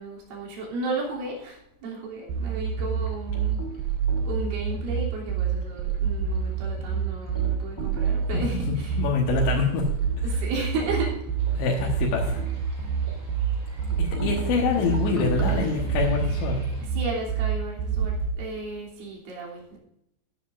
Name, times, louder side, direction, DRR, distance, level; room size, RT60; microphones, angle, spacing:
voice 1, 0.0-3.6 4.2-9.0 10.2-11.2 16.8-19.8, right 3 dB, 90° right, -3 dB, 5.6 m, -34 dB
sound 1, 2.3-18.3, right 7 dB, 70° right, 2.6 m, -27 dB
sound 2, 2.5-18.6, right 3 dB, 15° left, 0.6 m, -40 dB
voice 2, 8.3-9.9 10.2-10.4 11.6-12.4 14.0-16.6, left 5 dB, 75° left, -2 dB, 3.5 m, -26 dB
sound 3, 11.4-16.9, right 3 dB, 40° right, 5.3 m, -43 dB
14.5 x 11.0 x 2.5 m, 0.80 s
omnidirectional pair, 5.4 m